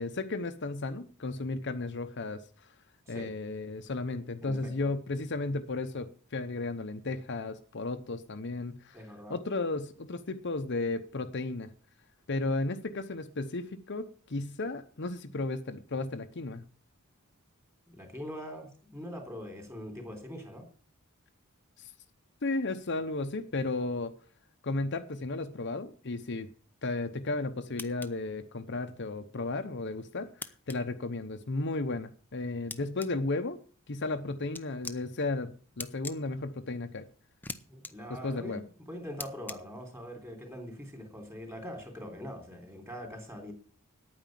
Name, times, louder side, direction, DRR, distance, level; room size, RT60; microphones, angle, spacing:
voice 1, 0.0-2.7 3.1-9.0 9.3-11.7 12.3-16.6 21.8-21.9 22.4-24.1 24.6-26.5 26.8-33.6 33.9-37.1 38.2-38.6, left 2 dB, 55° left, 0.8 m, -34 dB
voice 2, 4.4-4.7 8.9-9.4 17.9-20.6 37.7-43.5, equal, 10° right, 3.3 m, -43 dB
sound 1, 27.8-28.1 30.4-30.8 32.7-33.1 34.5-35.0 35.8-36.2 37.4-37.6 37.8-37.9 39.2-39.6, left 3 dB, 10° left, 0.6 m, -39 dB
9.7 x 9.2 x 7.5 m
head